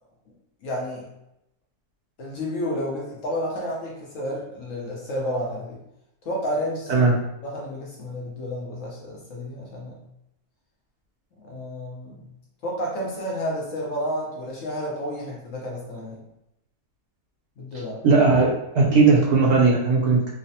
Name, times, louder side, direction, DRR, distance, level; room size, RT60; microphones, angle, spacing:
voice 1, 0.6-1.0 2.2-5.8 6.3-7.1 7.4-10.0 11.4-12.2 12.6-16.2 17.6-18.0, equal, 65° left, -4 dB, 0.9 m, -31 dB
voice 2, 18.0-20.3, right 4 dB, 70° right, -3 dB, 1.1 m, -18 dB
3.1 x 2.0 x 2.7 m, 0.84 s
omnidirectional pair, 1.7 m